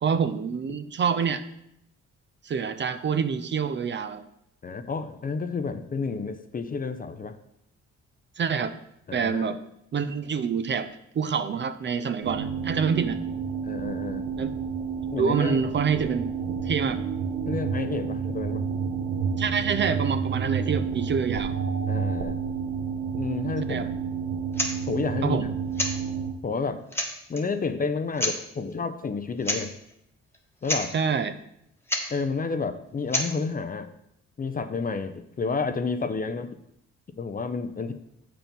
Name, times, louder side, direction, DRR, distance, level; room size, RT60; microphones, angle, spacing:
voice 1, 0.0-1.4 2.4-4.2 8.4-8.8 9.1-9.6 9.9-13.3 14.4-14.5 15.2-16.3 16.6-17.0 19.4-21.5 23.7-23.9 25.2-25.5 30.9-31.4, right 6 dB, 40° right, 11 dB, 0.5 m, -26 dB
voice 2, 4.6-7.4 9.1-9.5 13.6-14.3 15.1-15.6 17.5-18.6 21.9-22.4 23.2-23.9 24.9-25.5 26.4-26.8 27.3-29.7 30.6-30.9 32.1-33.9 34.4-36.5 37.2-37.9, left 4 dB, 30° left, 10 dB, 0.6 m, -30 dB
sound 1, 12.2-26.3, right 6 dB, 85° right, 1.0 m, -30 dB
sound 2, 24.5-24.8 25.7-26.0 26.6-26.7 26.9-27.4 28.2-28.4 29.4-29.6 29.9-30.0 30.3-30.4 30.6-30.9 31.9-32.1 33.1-33.3, left 1 dB, 10° left, 1.2 m, -28 dB
7.5 x 4.5 x 5.3 m, 0.76 s
cardioid pair, 90°, 30 cm